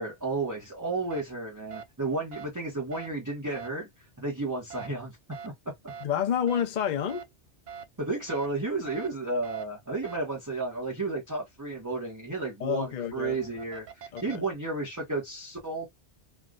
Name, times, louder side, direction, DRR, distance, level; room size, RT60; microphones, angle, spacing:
voice 1, 0.0-5.2 5.4-5.5 8.0-15.9, right 3 dB, 20° right, 1.0 m, -32 dB
sound 1, 1.1-1.2 1.7-1.8 2.3-2.5 2.9-3.1 3.5-3.7 4.7-4.9 5.3-5.5 5.9-6.1 6.5-6.6 7.1-7.2 7.7-7.8 8.3-8.5 8.9-9.1 9.4-9.6 10.0-10.2 13.0-14.4, right 7 dB, 60° right, 0.5 m, -42 dB
voice 2, 6.0-7.3 12.6-13.4 14.1-14.4, left 9 dB, 50° left, 0.6 m, -29 dB
3.3 x 2.4 x 2.4 m
omnidirectional pair, 1.1 m